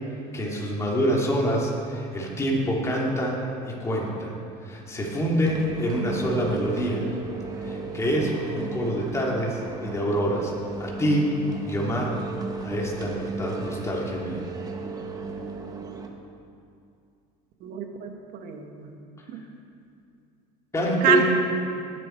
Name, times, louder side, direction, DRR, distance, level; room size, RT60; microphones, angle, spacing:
voice 1, 0.3-3.4 3.6-4.3 4.6-7.0 7.6-10.5 10.8-11.4 11.6-12.2 12.6-14.4 20.7-21.2, equal, 15° left, -3 dB, 2.9 m, -26 dB
sound 1, 5.4-16.1, right 3 dB, 20° right, 1.3 m, -35 dB
voice 2, 17.6-18.9 19.3-19.4 21.0-21.2, right 9 dB, 55° right, 4 dB, 1.7 m, -26 dB
18.5 x 10.5 x 4.6 m, 2.5 s
cardioid pair, 130°, 17 cm